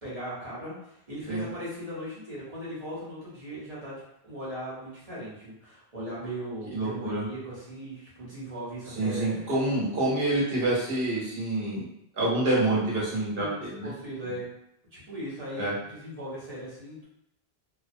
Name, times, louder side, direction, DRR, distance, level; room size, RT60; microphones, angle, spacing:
voice 1, 0.0-4.0 4.2-9.5 13.3-14.4 14.9-17.0, equal, 40° right, -8 dB, 1.1 m, -38 dB
voice 2, 6.7-7.2 9.0-11.8 12.2-13.9 15.6-15.7, right 2 dB, 65° right, -5 dB, 1.1 m, -27 dB
2.8 x 2.0 x 2.5 m, 0.78 s
omnidirectional pair, 1.1 m